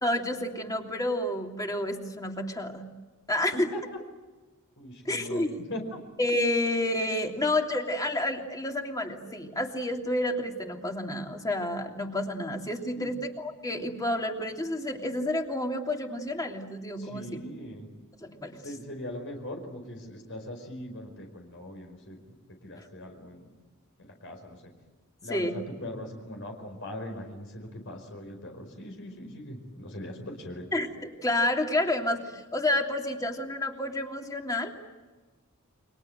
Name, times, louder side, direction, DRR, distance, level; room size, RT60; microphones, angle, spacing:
voice 1, 0.0-2.9 3.3-3.7 5.0-5.6 6.2-17.4 18.2-18.6 22.8-22.9 25.3-25.6 30.7-34.8, left 1 dB, 15° left, 2 dB, 2.9 m, -30 dB
voice 2, 3.5-4.0 4.8-5.4 5.7-6.0 12.9-13.1 17.0-17.9 18.6-22.2 22.6-23.5 24.0-24.7 25.2-30.7, left 1 dB, 65° left, 3 dB, 4.9 m, -40 dB
30.0 x 24.5 x 7.9 m, 1.3 s
head